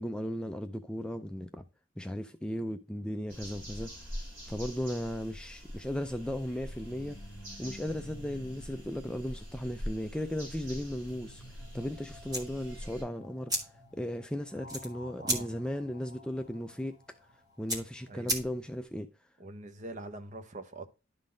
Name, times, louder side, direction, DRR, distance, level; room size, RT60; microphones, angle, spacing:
voice 1, 0.0-1.6 2.0-4.2 4.5-7.2 7.6-17.0 17.6-19.1, equal, 5° left, 0.3 m, -36 dB
sound 1, 3.3-13.0, equal, 55° right, 4.8 m, -44 dB
sound 2, 6.5-18.3, equal, 60° left, 1.7 m, -53 dB
sound 3, 12.3-18.9, right 1 dB, 20° right, 1.6 m, -38 dB
voice 2, 19.4-20.9, right 2 dB, 35° right, 0.8 m, -43 dB
11.5 x 3.9 x 3.7 m
head